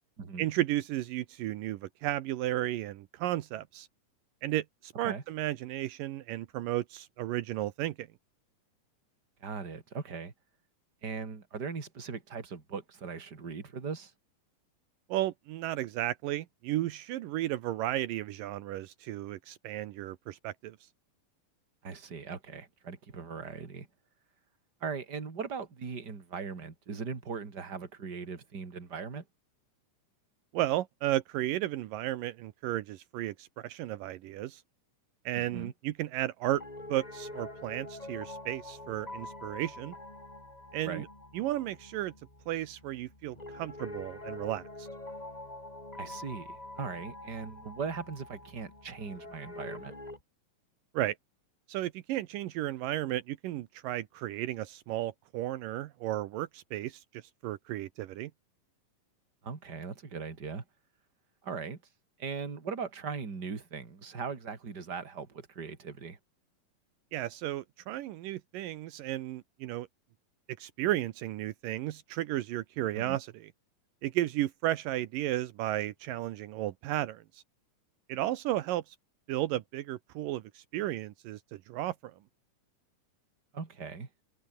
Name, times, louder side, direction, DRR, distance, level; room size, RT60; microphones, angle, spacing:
voice 1, 0.4-3.9 4.4-8.1 15.1-20.8 30.5-34.6 35.3-36.6 36.9-39.9 40.7-41.1 41.3-42.1 42.5-44.9 50.9-51.2 51.7-58.3 67.1-69.9 70.6-73.5 74.0-77.4 78.1-79.0 79.3-82.2, right 14 dB, 80° right, 2.6 m, -34 dB
voice 2, 9.4-10.3 11.0-14.1 21.8-23.9 24.8-29.2 35.4-35.7 40.8-41.0 46.0-49.9 59.4-60.6 61.4-61.8 62.2-66.2 72.9-73.2 83.5-84.1, right 5 dB, 30° right, 3.4 m, -39 dB
Piano, 36.5-50.2, left 2 dB, 10° left, 3.2 m, -45 dB
omnidirectional pair, 3.9 m